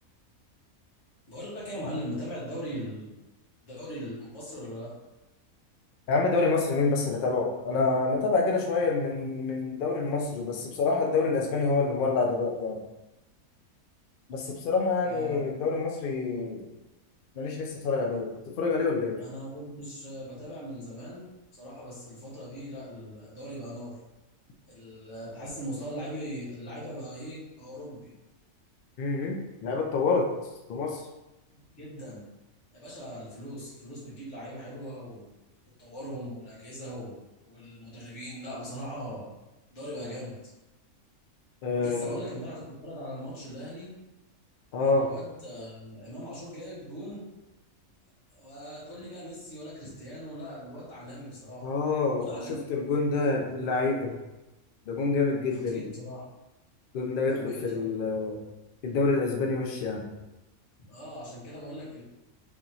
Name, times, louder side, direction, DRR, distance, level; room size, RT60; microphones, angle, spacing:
voice 1, 1.3-3.1 3.6-4.9 15.0-15.4 19.1-21.2 21.5-23.9 24.6-28.1 31.8-32.2 32.7-35.3 35.8-37.2 37.5-39.3 39.7-40.3 41.8-43.9 44.8-47.2 48.3-51.7 52.2-52.6 55.7-56.2 57.3-57.8 60.8-62.0, equal, 55° left, -7 dB, 1.6 m, -40 dB
voice 2, 6.1-12.8 14.3-16.6 17.4-18.3 18.6-19.2 29.0-29.4 29.6-30.3 30.7-31.1 41.6-42.2 44.7-45.1 51.6-54.1 54.9-55.8 56.9-58.4 58.8-60.0, left 4 dB, 70° left, 0 dB, 0.5 m, -27 dB
4.0 x 2.9 x 2.7 m, 0.99 s
omnidirectional pair, 1.5 m